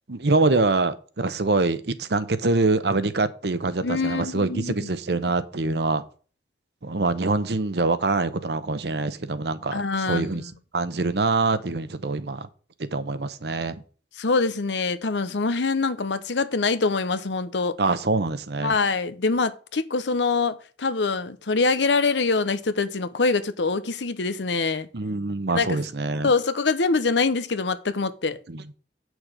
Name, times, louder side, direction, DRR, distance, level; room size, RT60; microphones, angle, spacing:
voice 1, 0.1-6.0 6.8-10.4 10.7-12.5 12.8-13.8 17.8-18.8 24.9-26.3 28.5-28.7, right 3 dB, 65° right, 0.8 m, -25 dB
voice 2, 3.8-4.9 9.7-10.3 14.2-17.8 18.6-24.9 25.5-25.8 26.2-28.4, left 4 dB, 85° left, 0.8 m, -24 dB
8.0 x 6.3 x 5.0 m
head